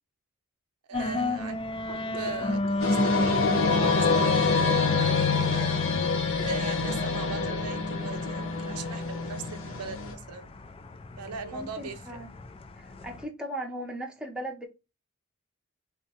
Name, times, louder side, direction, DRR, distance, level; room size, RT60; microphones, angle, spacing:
sound 1, 0.9-13.2, left 3 dB, 25° left, 0.3 m, -32 dB
voice 1, 0.9-1.6 1.9-5.8 6.4-10.5 11.2-12.0, right 4 dB, 85° right, 0.6 m, -39 dB
sound 2, 1.9-8.6, equal, 85° left, 1.0 m, -45 dB
sound 3, 2.8-10.1, left 4 dB, 60° left, 0.8 m, -27 dB
voice 2, 11.5-12.3 12.8-14.7, right 1 dB, 5° right, 0.7 m, -38 dB
3.6 x 2.1 x 2.8 m
head